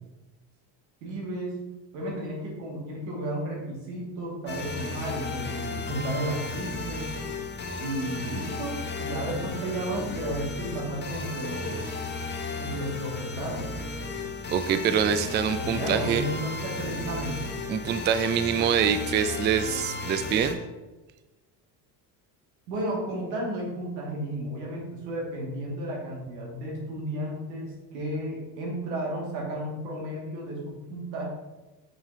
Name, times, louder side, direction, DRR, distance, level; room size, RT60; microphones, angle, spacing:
voice 1, 1.0-1.6 1.9-7.2 7.8-11.8 12.6-13.7 15.6-17.4 22.7-31.3, right 1 dB, 80° right, -2 dB, 2.2 m, -33 dB
sound 1, 4.5-20.5, left 3 dB, 20° left, 0.9 m, -34 dB
voice 2, 14.5-16.2 17.7-20.6, right 8 dB, 25° right, 10 dB, 0.3 m, -25 dB
6.8 x 5.8 x 2.8 m, 1.1 s
hypercardioid pair, 75°, 49 cm